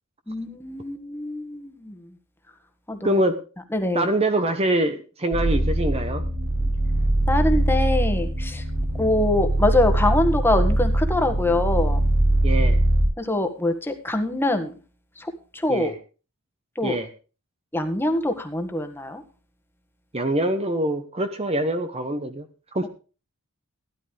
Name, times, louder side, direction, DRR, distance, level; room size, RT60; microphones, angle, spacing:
voice 1, 0.3-2.0 2.9-3.2 3.7-4.1 7.3-8.6 9.0-12.0 13.2-14.7 15.2-15.9 16.7-17.0 17.7-19.2, left 1 dB, 10° left, 6 dB, 1.7 m, -24 dB
voice 2, 3.0-3.4 3.9-6.2 12.4-12.8 15.7-15.9 16.8-17.1 20.1-22.5 22.7-22.9, right 1 dB, 25° right, 8 dB, 1.0 m, -24 dB
sound 1, 5.3-13.0, right 1 dB, 70° right, 5.9 m, -22 dB
16.5 x 11.0 x 3.4 m, 0.34 s
head